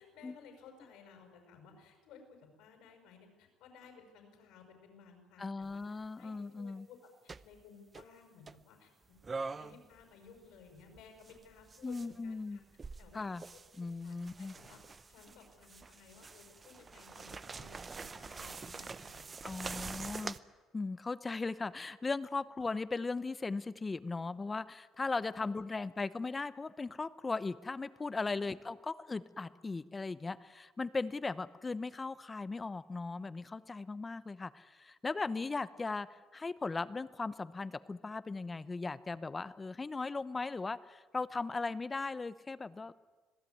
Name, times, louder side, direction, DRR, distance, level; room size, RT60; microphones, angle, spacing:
voice 1, 0.0-5.8 6.2-7.0 7.2-8.9 9.5-12.6 13.0-13.4 13.8-14.8 15.1-19.2 25.2-25.4 28.3-28.4, left 6 dB, 80° left, 4 dB, 5.7 m, -57 dB
voice 2, 5.4-6.9 11.8-12.6 13.1-13.4 13.8-14.5 19.4-20.4 20.7-42.9, left 3 dB, 20° left, 16 dB, 0.9 m, -38 dB
sound 1, 5.6-5.8 7.3-7.6 7.9-8.0 8.5-8.6 9.2-10.0 10.3-12.2 12.7-20.4, right 4 dB, 25° right, 0.8 m, -45 dB
26.0 x 17.0 x 9.4 m, 1.4 s
cardioid pair, 115°, 0 cm